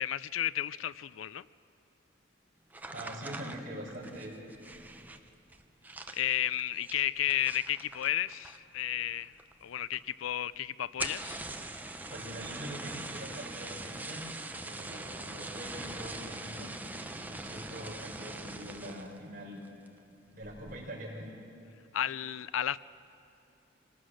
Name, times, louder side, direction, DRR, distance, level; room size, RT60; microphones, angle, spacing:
voice 1, 0.0-1.4 6.1-9.3 9.6-11.4 21.9-22.8, left 11 dB, 85° left, 18 dB, 0.4 m, -32 dB
sound 1, 2.7-8.8 9.1-9.6 9.9-10.0 10.3-10.4 10.8-19.2 19.6-20.0 20.4-20.8, right 2 dB, 10° right, 0.7 m, -42 dB
voice 2, 2.9-4.4 12.1-14.4 14.6-19.6 20.3-21.3, equal, 45° right, -3 dB, 5.1 m, -43 dB
26.0 x 19.0 x 6.4 m, 2.8 s
head